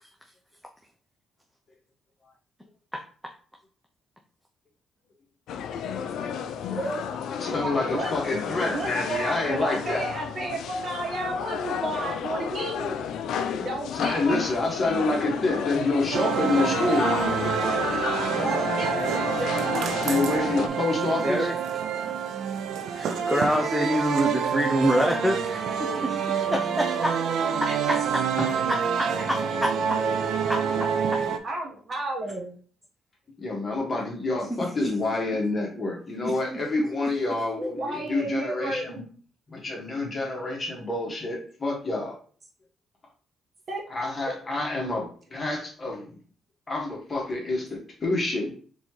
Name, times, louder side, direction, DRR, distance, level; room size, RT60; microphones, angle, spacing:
sound 1, 5.5-20.7, left 7 dB, 80° left, 0.4 m, -32 dB
voice 1, 6.7-7.1 7.4-8.1 8.7-13.0 13.6-14.4 18.0-19.2 26.7-27.0 27.7-27.8 31.4-32.6 37.6-39.0 43.7-43.8, right 2 dB, 45° right, 0 dB, 1.3 m, -32 dB
voice 2, 7.4-10.1 13.9-17.1 20.0-21.5 26.5-26.6 28.4-28.5 33.4-39.1 39.5-42.2 43.9-46.2 46.7-48.5, left 2 dB, 30° left, -1 dB, 1.7 m, -28 dB
sound 2, 16.1-31.4, right 7 dB, 75° right, 0.5 m, -27 dB
voice 3, 21.2-21.5 22.9-27.2 29.0-29.4 34.6-34.9 36.5-36.6, equal, ahead, 0 dB, 0.6 m, -26 dB
4.1 x 3.6 x 3.2 m, 0.43 s
cardioid pair, 90°, 0 cm